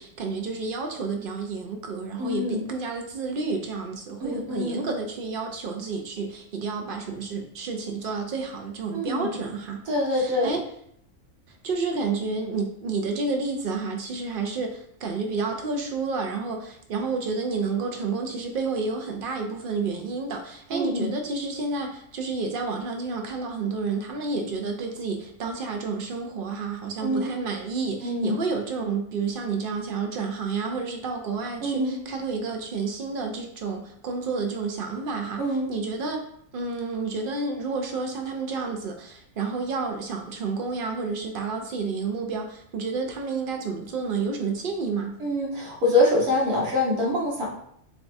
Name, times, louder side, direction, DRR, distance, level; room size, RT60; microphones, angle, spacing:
voice 1, 0.0-9.8 10.1-10.6 11.5-36.2 36.5-45.2, right 4 dB, 65° right, 3 dB, 0.5 m, -30 dB
voice 2, 2.2-2.6 4.2-4.9 8.9-9.3 9.9-10.5 20.7-21.1 27.0-27.4 28.0-28.4 31.6-32.0 35.4-35.7 45.2-47.5, left 1 dB, 85° right, -5 dB, 1.9 m, -25 dB
7.0 x 2.4 x 2.6 m, 0.69 s
omnidirectional pair, 1.5 m